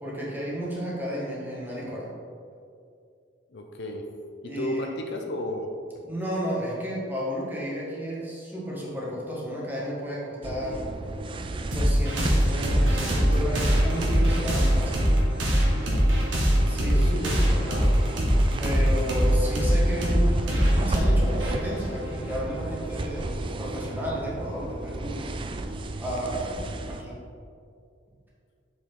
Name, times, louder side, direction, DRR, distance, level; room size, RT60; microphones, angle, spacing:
voice 1, 0.0-2.1 4.4-4.9 6.0-10.8 11.7-15.0 16.7-17.9 18.6-25.2 26.0-27.2, equal, 10° right, -6 dB, 1.6 m, -33 dB
voice 2, 3.5-4.0 4.4-5.7 15.8-16.2 16.6-17.9, left 1 dB, 65° left, 3 dB, 0.6 m, -34 dB
sound 1, 10.4-27.0, right 2 dB, 25° right, 0.3 m, -33 dB
sound 2, 11.7-22.8, equal, 90° right, 1.6 m, -23 dB
6.7 x 5.5 x 3.8 m, 2.4 s
head